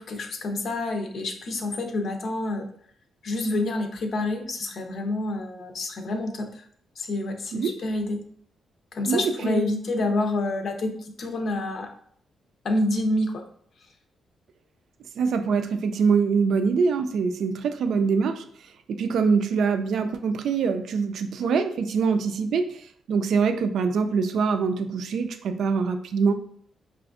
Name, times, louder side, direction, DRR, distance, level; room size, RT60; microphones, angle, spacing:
voice 1, 0.0-2.7 3.2-6.7 7.0-8.2 8.9-11.9 12.6-13.4, left 2 dB, 65° left, 4 dB, 0.6 m, -28 dB
voice 2, 9.1-9.7 15.2-18.4 18.9-26.3, right 5 dB, 75° right, 8 dB, 0.3 m, -24 dB
4.9 x 2.5 x 2.4 m, 0.62 s
supercardioid pair, 60°, 0 cm